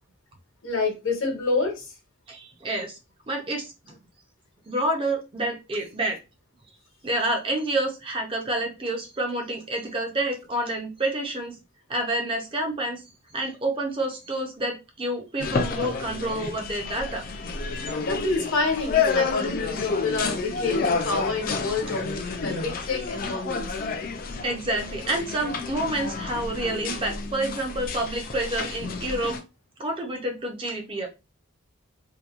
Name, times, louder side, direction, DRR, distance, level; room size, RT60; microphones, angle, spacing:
voice 1, 0.6-1.9 18.1-23.7, left 3 dB, 75° left, 1.0 m, -28 dB
voice 2, 2.3-3.0 3.3-4.0 4.7-6.2 7.0-11.6 11.9-13.0 13.3-17.2 22.5-22.6 24.4-29.4 29.8-31.1, right 1 dB, 25° right, 0.5 m, -28 dB
sound 1, 15.4-29.4, left 4 dB, 45° left, 0.4 m, -30 dB
2.7 x 2.2 x 2.4 m
head